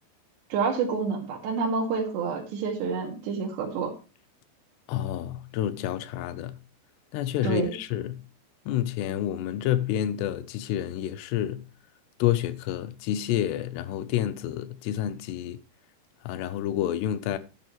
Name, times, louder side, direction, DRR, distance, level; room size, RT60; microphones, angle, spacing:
voice 1, 0.5-3.9 7.4-7.7, right 5 dB, 80° right, 4.3 m, -28 dB
voice 2, 4.9-6.6 7.1-8.3 8.7-11.7 12.2-15.6 16.2-17.4, left 12 dB, 80° left, 2.8 m, -29 dB
11.5 x 10.5 x 3.1 m
omnidirectional pair, 4.9 m